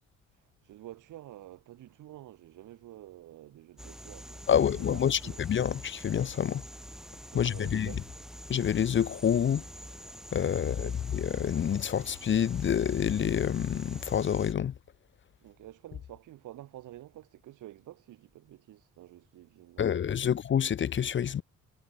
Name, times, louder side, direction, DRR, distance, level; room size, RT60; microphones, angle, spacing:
voice 1, 0.6-5.5 7.3-8.1 10.6-11.0 15.4-20.3, right 14 dB, 85° right, 6.8 m, -49 dB
sound 1, 3.8-14.5, equal, ahead, 3.0 m, -47 dB
voice 2, 4.5-6.6 7.3-7.9 8.5-9.6 10.3-14.7 19.8-21.4, left 8 dB, 40° left, 0.7 m, -27 dB
cardioid pair, 90°, 30 cm